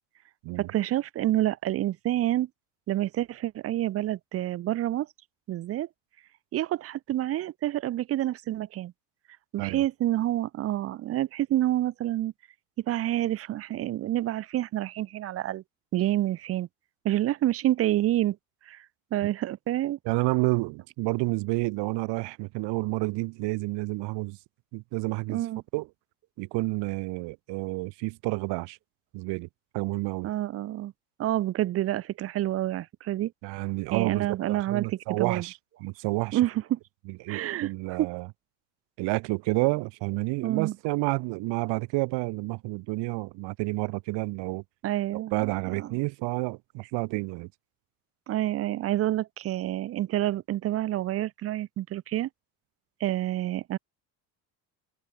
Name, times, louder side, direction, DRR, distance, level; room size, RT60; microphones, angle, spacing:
voice 1, 0.6-2.5 2.9-5.1 5.5-5.9 6.5-8.9 9.5-12.3 12.8-15.6 15.9-16.7 17.0-18.4 18.7-18.8 19.1-20.0 25.3-25.6 30.2-30.9 31.2-33.3 33.9-35.4 36.3-36.8 37.3-38.1 40.4-40.7 44.8-46.0 48.3-52.3 53.0-53.8, right 14 dB, 35° right, 0.5 m, -28 dB
voice 2, 20.0-24.4 24.7-25.4 25.7-25.9 26.4-28.8 29.1-29.5 29.7-30.3 33.4-36.4 37.2-38.3 39.0-44.6 45.1-47.5, right 24 dB, 75° right, 1.6 m, -30 dB
cardioid pair, 155°, 42 cm